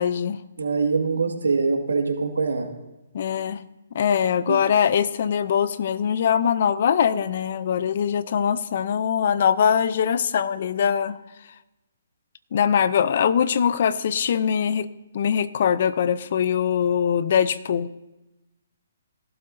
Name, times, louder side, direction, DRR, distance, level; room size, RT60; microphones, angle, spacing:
voice 1, 0.0-0.4 3.1-3.6 3.9-11.2 12.5-14.9 15.1-17.9, left 8 dB, 55° left, 16 dB, 0.5 m, -22 dB
voice 2, 0.6-2.7 4.5-4.6, right 4 dB, 85° right, 3 dB, 1.9 m, -23 dB
17.5 x 12.0 x 2.7 m, 0.98 s
hypercardioid pair, 145°, 0 cm